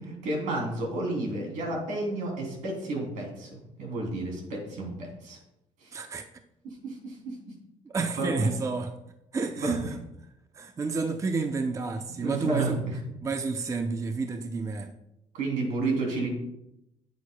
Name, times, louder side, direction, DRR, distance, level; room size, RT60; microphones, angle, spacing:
voice 1, 0.0-5.4 5.8-6.0 6.6-7.5 8.2-8.5 9.6-9.8 12.2-13.0 15.3-16.3, right 2 dB, 85° right, 3.0 m, -31 dB
voice 2, 5.9-6.3 7.9-8.9 9.3-10.0 10.5-12.8 13.2-14.9, right 4 dB, 25° right, 0.5 m, -30 dB
9.3 x 8.5 x 2.2 m
cardioid pair, 110°, 13 cm